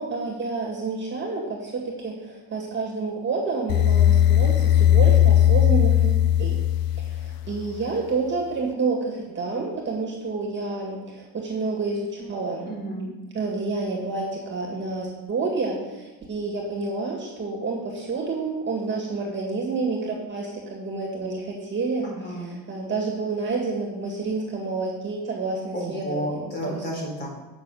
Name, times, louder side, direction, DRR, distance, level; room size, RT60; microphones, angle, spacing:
voice 1, 0.0-6.6 7.0-12.7 13.3-22.1 22.3-26.4 26.7-26.8, right 3 dB, 30° right, -2 dB, 2.0 m, -29 dB
sound 1, 3.7-7.8, left 11 dB, 70° left, 0.5 m, -18 dB
voice 2, 12.6-13.1 22.0-22.5 25.7-27.3, right 1 dB, 30° left, -3 dB, 3.8 m, -31 dB
9.3 x 6.4 x 6.3 m, 1.1 s
cardioid pair, 150°, 37 cm